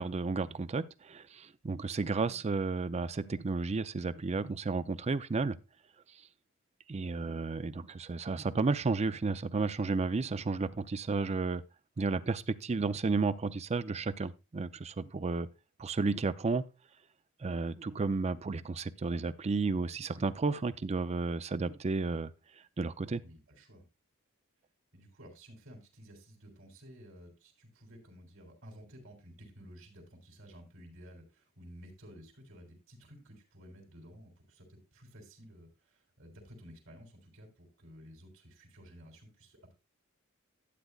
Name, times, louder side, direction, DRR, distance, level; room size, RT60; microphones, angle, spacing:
voice 1, 0.0-5.6 6.9-11.6 12.0-15.5 15.8-16.6 17.4-22.3 22.8-23.2, right 3 dB, 30° right, 0.4 m, -32 dB
voice 2, 23.2-23.8 24.9-39.7, equal, 65° right, 3.5 m, -53 dB
12.0 x 9.3 x 2.4 m
head